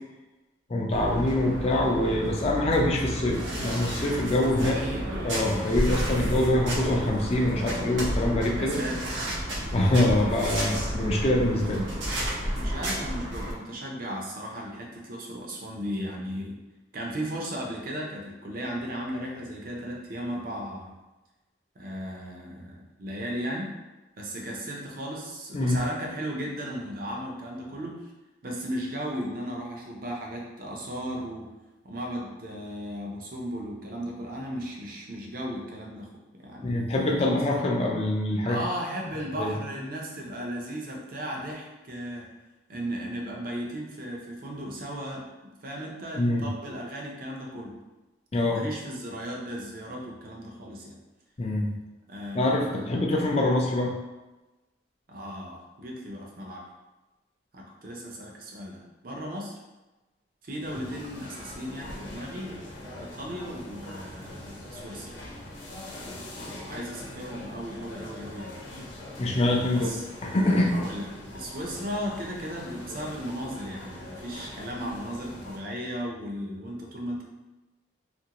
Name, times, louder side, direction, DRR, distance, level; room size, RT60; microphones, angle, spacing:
voice 1, 0.7-4.7 5.2-8.8 9.7-11.8 25.5-25.8 36.6-38.6 39.4-39.5 46.2-46.4 48.3-48.6 51.4-51.7 52.3-53.9 69.2-69.9 70.2-70.7, left 1 dB, 35° left, 0 dB, 0.4 m, -24 dB
sound 1, 0.9-13.5, equal, 80° right, 0.8 m, -31 dB
voice 2, 4.4-5.5 8.6-9.1 12.6-16.6 16.9-20.9 21.8-23.7 24.2-28.1 28.4-31.5 31.8-36.8 37.2-37.4 38.4-42.3 42.7-45.3 45.6-47.7 48.5-51.0 52.1-53.0 55.1-56.6 57.5-59.6 60.4-65.1 66.6-68.6 69.7-70.0 70.7-71.1 71.3-77.2, equal, 50° right, -1 dB, 0.6 m, -36 dB
sound 2, 60.6-75.6, left 1 dB, 80° left, 0.8 m, -42 dB
2.7 x 2.5 x 2.9 m, 1.1 s
head